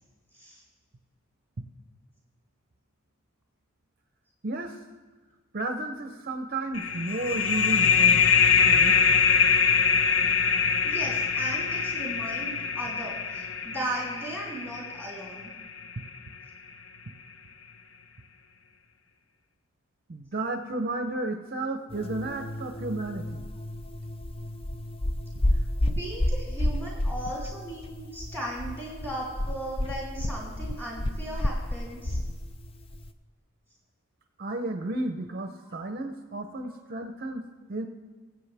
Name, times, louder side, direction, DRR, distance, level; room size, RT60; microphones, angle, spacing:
voice 1, 4.4-4.8 5.5-8.3 8.7-9.3 20.1-23.4 34.4-37.8, right 2 dB, 40° right, 6 dB, 0.6 m, -33 dB
sound 1, 6.7-16.0, left 6 dB, 65° left, 0.7 m, -23 dB
voice 2, 10.8-15.5 25.8-32.2 35.6-35.7 36.6-36.8, right 1 dB, 10° left, -4 dB, 3.0 m, -37 dB
sound 2, 21.9-33.1, left 1 dB, 25° left, 0.4 m, -31 dB
21.0 x 8.0 x 3.4 m, 1.4 s
head